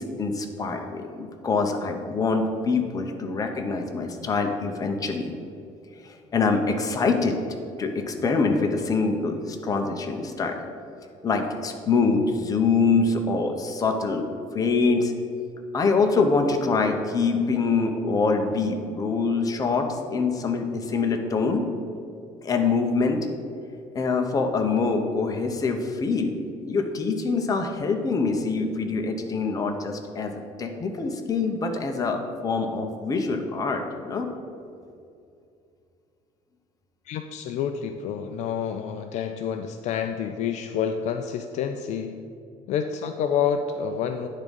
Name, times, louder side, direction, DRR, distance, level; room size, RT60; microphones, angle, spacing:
voice 1, 0.0-5.3 6.0-7.4 7.8-10.7 11.2-14.3 14.5-15.1 15.7-21.7 22.4-23.2 23.9-34.3, left 4 dB, 25° left, 4 dB, 0.8 m, -25 dB
voice 2, 37.1-42.2 42.7-44.3, left 7 dB, 60° left, 7 dB, 0.4 m, -28 dB
9.5 x 3.6 x 5.3 m, 2.5 s
cardioid pair, 135°, 14 cm